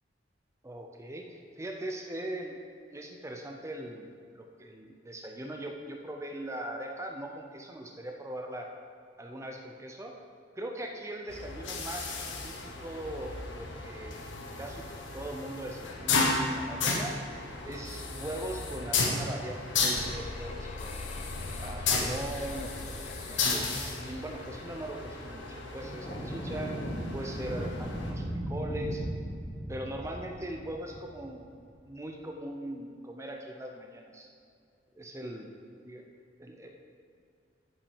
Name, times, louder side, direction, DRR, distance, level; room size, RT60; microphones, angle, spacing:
voice 1, 0.6-2.6 2.9-8.7 9.2-10.1 10.6-12.1 12.4-14.3 14.6-14.9 15.1-17.1 17.6-21.1 21.6-22.9 23.3-26.8 27.1-29.0 29.7-31.5 31.9-34.3 34.9-35.6 35.8-36.0 36.4-36.9, right 1 dB, 15° right, 2 dB, 0.6 m, -40 dB
sound 1, 11.3-28.1, left 3 dB, 80° left, 1.4 m, -34 dB
sound 2, 19.9-25.1, left 3 dB, 35° left, 0.5 m, -43 dB
sound 3, 25.8-31.4, equal, 15° left, 2.1 m, -37 dB
9.2 x 6.0 x 7.1 m, 2.4 s
head